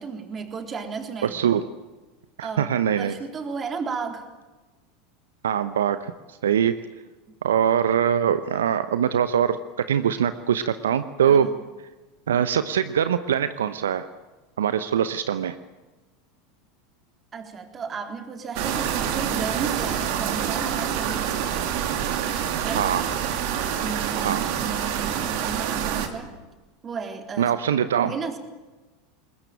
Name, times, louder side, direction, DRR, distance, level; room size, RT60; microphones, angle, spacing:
voice 1, 0.0-1.5 2.4-4.3 11.3-11.6 17.3-21.7 22.6-22.9 23.8-26.4 26.8-27.6 28.0-28.4, right 5 dB, 30° right, 5 dB, 3.6 m, -34 dB
voice 2, 1.2-1.6 2.4-3.1 5.4-6.1 6.4-6.7 7.4-9.6 9.9-11.5 12.3-14.1 14.6-15.6 22.7-23.1 24.2-24.5 27.4-28.1, right 8 dB, 80° right, 12 dB, 0.8 m, -22 dB
sound 1, 18.5-26.1, right 9 dB, 60° right, 2.7 m, -26 dB
21.5 x 20.5 x 9.1 m, 1.2 s
hypercardioid pair, 85°, 0 cm